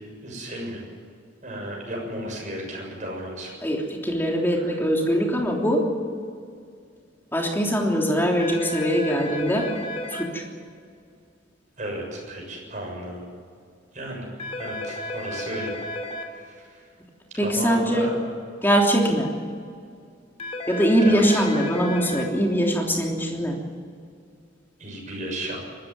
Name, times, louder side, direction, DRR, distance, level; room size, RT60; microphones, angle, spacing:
voice 1, 0.2-0.8 1.4-3.5 4.6-4.7 11.8-13.2 13.9-14.3 14.6-15.7 16.3-16.8 17.4-18.1 21.1-21.4 24.8-25.6, right 1 dB, 40° right, 0 dB, 7.0 m, -34 dB
voice 2, 3.6-5.8 7.3-9.7 10.1-10.4 17.4-18.1 18.6-19.3 20.7-23.6, equal, 10° left, 0 dB, 3.3 m, -22 dB
sound 1, 8.4-10.2 14.4-16.2 20.4-22.2, left 1 dB, 35° left, 2.9 m, -33 dB
23.0 x 13.5 x 9.4 m, 2.2 s
head